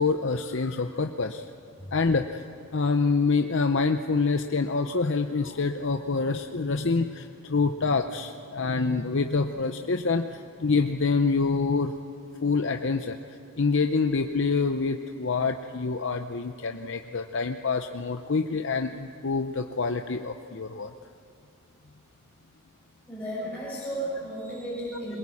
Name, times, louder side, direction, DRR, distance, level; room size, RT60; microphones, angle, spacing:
voice 1, 0.0-1.4 1.9-2.4 2.7-11.9 12.4-13.2 13.6-20.9, left 4 dB, 60° left, 6 dB, 0.7 m, -26 dB
voice 2, 23.1-25.2, right 1 dB, 5° left, -9 dB, 6.0 m, -34 dB
22.5 x 21.5 x 8.6 m, 2.6 s
head